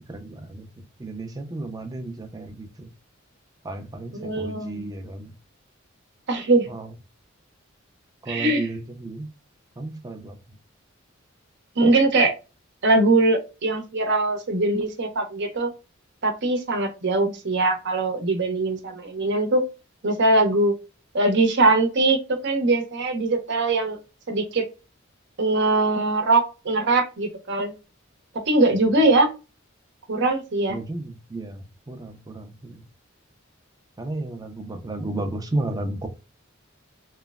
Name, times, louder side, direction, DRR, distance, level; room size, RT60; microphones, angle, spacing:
voice 1, 0.1-2.9 3.6-5.3 6.7-6.9 8.2-9.3 9.8-10.4 30.7-32.8 34.0-36.1, right 2 dB, 20° right, 5 dB, 0.5 m, -33 dB
voice 2, 4.2-4.9 6.3-6.7 8.3-8.7 11.8-12.3 12.8-15.7 16.2-19.6 20.0-20.7 21.1-24.0 24.3-24.6 25.4-27.7 28.5-29.3 30.1-30.8, right 2 dB, 60° right, 5 dB, 0.8 m, -21 dB
3.1 x 2.1 x 2.3 m, 0.30 s
head